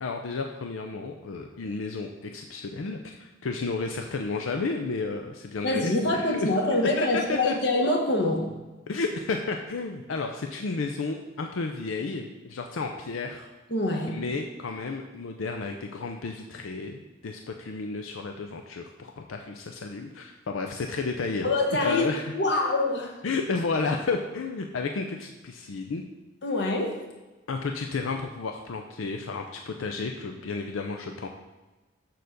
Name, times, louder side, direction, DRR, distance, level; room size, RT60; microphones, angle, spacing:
voice 1, 0.0-6.5 7.0-7.5 8.9-13.5 14.1-21.5 21.8-22.3 23.2-26.0 27.5-31.3, left 4 dB, 85° left, 4 dB, 0.5 m, -32 dB
voice 2, 5.6-8.6 13.7-14.3 21.4-22.1 22.3-23.2 26.4-27.0, left 2 dB, 55° left, 2 dB, 1.1 m, -25 dB
6.6 x 4.0 x 6.5 m, 1.2 s
head